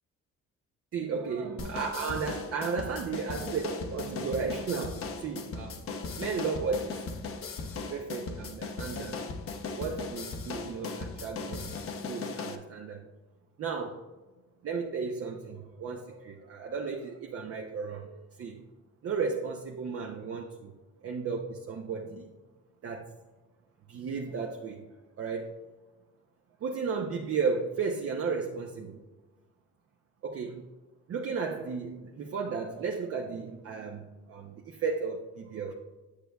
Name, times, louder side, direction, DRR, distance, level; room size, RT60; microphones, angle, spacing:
voice 1, 0.9-5.8 6.2-7.2 7.9-9.2 9.8-11.7 12.0-13.1 13.6-14.0 14.6-18.6 19.0-20.7 21.0-22.3 22.8-23.1 23.9-24.9 25.2-25.6 26.6-29.0 30.2-30.6 31.1-35.7, right 5 dB, 50° right, 2 dB, 0.7 m, -34 dB
sound 1, 1.6-12.6, left 4 dB, 45° left, 0.8 m, -38 dB
8.2 x 6.7 x 2.3 m, 1.2 s
cardioid pair, 90°, 30 cm